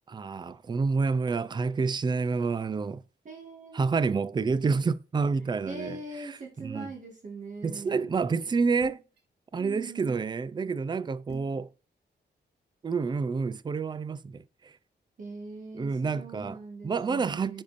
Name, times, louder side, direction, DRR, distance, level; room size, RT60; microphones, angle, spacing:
voice 1, 0.1-3.0 3.7-6.9 7.6-9.0 9.5-11.7 12.8-14.7 15.7-16.6 16.8-17.6, right 4 dB, 25° right, 0.4 m, -29 dB
voice 2, 3.3-4.2 5.7-8.1 9.6-10.2 15.2-17.6, right 3 dB, 45° right, 1.7 m, -42 dB
sound 1, 8.8-9.2 11.3-11.6, right 6 dB, 60° right, 1.8 m, -48 dB
10.0 x 5.3 x 2.6 m
wide cardioid pair, 150°, 19 cm